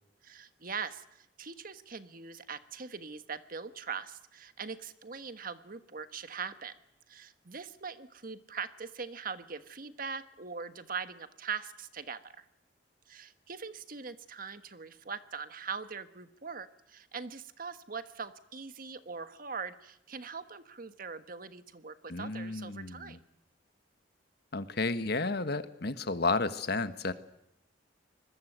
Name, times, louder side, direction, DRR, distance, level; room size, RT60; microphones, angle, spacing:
voice 1, 0.2-6.8 7.1-12.5 13.1-23.2, right 5 dB, 50° right, 11 dB, 1.4 m, -41 dB
voice 2, 22.1-23.2 24.5-27.1, left 3 dB, 60° left, 11 dB, 1.4 m, -32 dB
25.5 x 21.0 x 8.1 m, 0.79 s
head